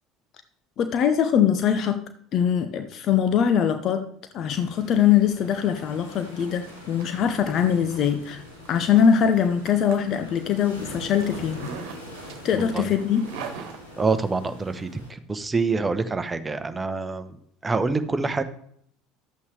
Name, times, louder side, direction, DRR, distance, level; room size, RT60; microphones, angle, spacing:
voice 1, 0.8-2.0 2.3-4.1 4.3-8.4 8.7-11.7 12.4-13.2, left 8 dB, 50° left, 9 dB, 0.8 m, -22 dB
sound 1, 4.5-15.1, left 1 dB, 90° left, 2.8 m, -43 dB
Zipper (clothing), 5.8-14.5, right 7 dB, 60° right, 1.4 m, -44 dB
voice 2, 14.0-15.0 15.3-17.3 17.6-18.4, right 4 dB, 20° right, 10 dB, 1.0 m, -26 dB
11.5 x 8.3 x 3.4 m, 0.65 s
figure-of-eight pair, 65°, 0 cm